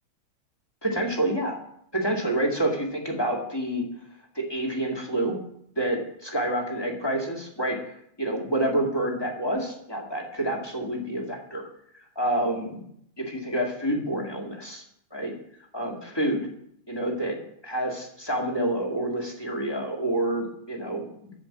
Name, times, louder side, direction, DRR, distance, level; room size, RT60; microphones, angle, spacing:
voice 1, 0.8-1.6 1.9-3.8 4.3-5.4 5.7-11.7 12.1-12.8 13.2-14.8 15.1-15.3 15.7-16.5 16.9-17.4 17.6-21.3, right 1 dB, 10° left, -1 dB, 1.6 m, -28 dB
14.5 x 5.2 x 8.6 m, 0.71 s
omnidirectional pair, 3.5 m